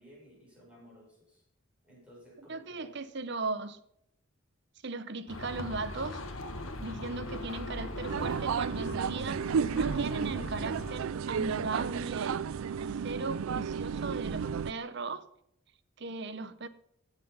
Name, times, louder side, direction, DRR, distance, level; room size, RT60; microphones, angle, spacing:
voice 1, 0.0-1.4 1.8-2.9, equal, 5° right, 6.3 m, -55 dB
voice 2, 2.5-3.8 4.8-6.2 6.8-12.4 12.8-15.3 16.0-16.7, right 3 dB, 55° right, 0.8 m, -37 dB
sound 1, 5.3-11.0, left 1 dB, 75° left, 1.6 m, -40 dB
sound 2, 8.1-14.7, right 6 dB, 80° right, 0.4 m, -32 dB
16.0 x 7.1 x 5.6 m
head